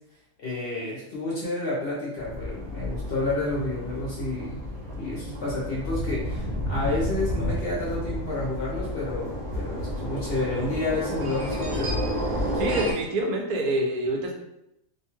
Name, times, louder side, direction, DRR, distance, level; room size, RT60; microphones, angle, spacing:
voice 1, 0.4-4.6 4.9-11.9, left 2 dB, 50° left, -5 dB, 0.8 m, -30 dB
sound 1, 2.2-12.9, equal, 45° right, 0.6 m, -31 dB
voice 2, 12.6-14.3, right 1 dB, 85° right, 1 dB, 1.1 m, -26 dB
2.7 x 2.2 x 2.9 m, 0.84 s
omnidirectional pair, 1.5 m